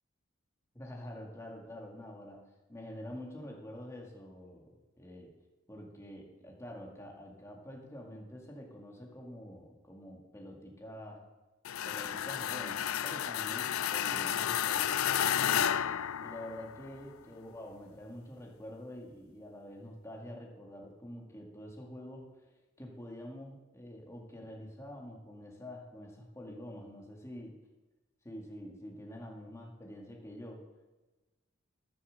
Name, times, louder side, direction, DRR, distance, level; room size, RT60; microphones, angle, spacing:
voice 1, 0.7-5.3 5.7-11.2 11.8-27.6 28.2-30.7, left 1 dB, 15° left, -1 dB, 2.0 m, -47 dB
sound 1, 11.6-16.9, left 9 dB, 90° left, 0.4 m, -32 dB
14.0 x 7.1 x 6.5 m, 1.1 s
head